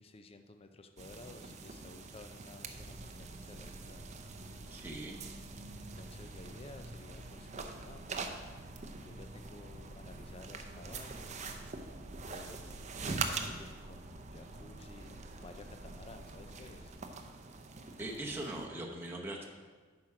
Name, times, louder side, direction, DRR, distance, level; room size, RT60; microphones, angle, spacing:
voice 1, 0.0-4.0 5.7-8.4 9.0-11.6 12.2-16.9, left 2 dB, 30° left, 8 dB, 0.5 m, -54 dB
sound 1, 1.0-18.7, right 4 dB, 40° right, 0.6 m, -44 dB
sound 2, 2.7-16.9, equal, 55° right, 1.0 m, -53 dB
voice 2, 4.7-5.2 18.0-19.5, right 1 dB, 10° right, -2 dB, 0.9 m, -40 dB
8.8 x 5.9 x 4.8 m, 1.5 s
head